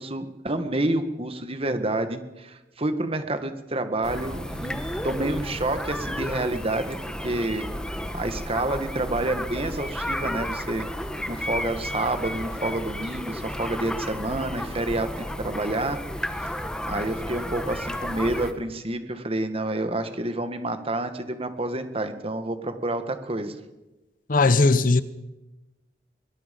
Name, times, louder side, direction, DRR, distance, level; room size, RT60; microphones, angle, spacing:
voice 1, 0.0-7.0 7.2-7.7 8.1-10.9 11.3-15.1 15.4-16.0 16.4-16.5 16.9-23.6, right 2 dB, 35° right, 1.8 m, -28 dB
sound 1, 4.0-18.5, equal, 5° left, 1.4 m, -32 dB
voice 2, 24.3-25.0, left 3 dB, 50° left, 0.9 m, -18 dB
23.0 x 21.0 x 5.4 m
head